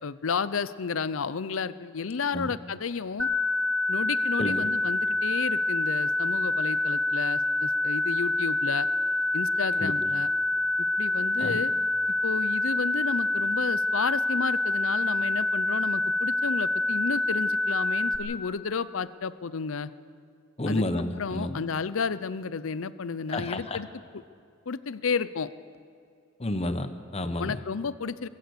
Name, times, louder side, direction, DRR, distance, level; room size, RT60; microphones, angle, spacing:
voice 1, 0.0-3.3 3.9-8.9 9.3-10.3 10.8-11.7 12.2-19.9 20.7-20.8 21.2-23.9 24.7-25.5 27.4-28.3, left 5 dB, 75° left, 15 dB, 0.6 m, -32 dB
sound 1, 3.2-18.2, left 2 dB, 5° left, 1.3 m, -26 dB
voice 2, 20.6-21.6 23.3-23.8 26.4-27.6, left 1 dB, 30° left, 9 dB, 1.0 m, -30 dB
22.5 x 15.0 x 8.1 m, 2.3 s
head